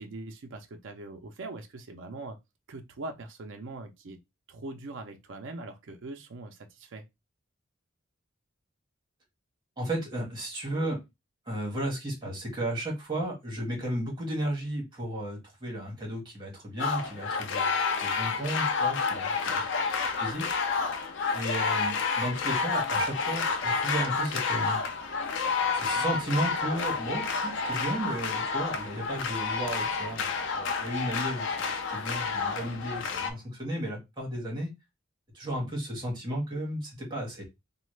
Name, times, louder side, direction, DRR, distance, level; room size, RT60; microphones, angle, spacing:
voice 1, 0.0-2.4 2.7-4.2 4.5-7.0 19.4-19.7, right 2 dB, 60° right, 0.5 m, -42 dB
voice 2, 9.8-11.0 11.5-19.7 20.2-20.5 21.3-24.8 25.7-31.6 31.9-34.7 35.3-37.4, right 1 dB, 20° right, 1.4 m, -34 dB
sound 1, 16.8-33.3, left 4 dB, 60° left, 0.5 m, -29 dB
3.0 x 2.2 x 3.2 m
head